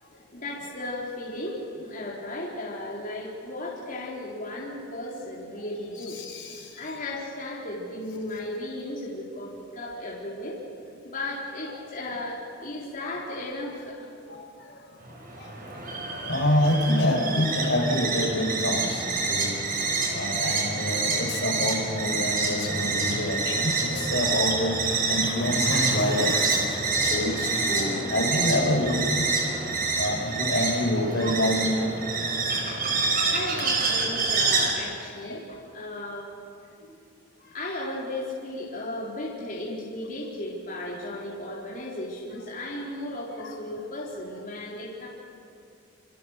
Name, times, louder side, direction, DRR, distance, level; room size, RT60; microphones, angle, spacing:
voice 1, 0.3-6.2 6.8-10.6 11.0-14.0 33.3-36.3 37.4-45.1, left 1 dB, 45° left, -6 dB, 4.4 m, -35 dB
voice 2, 6.1-6.7 14.3-14.4 15.4-15.5 16.3-19.6 20.1-29.2 30.0-32.1 35.2-35.4 43.4-43.5, left 1 dB, 65° left, 1 dB, 6.1 m, -27 dB
sound 1, 15.0-34.7, right 4 dB, 50° right, 6.0 m, -27 dB
sound 2, 23.9-30.2, equal, 10° right, 6.8 m, -42 dB
29.0 x 28.5 x 6.7 m, 2.5 s
head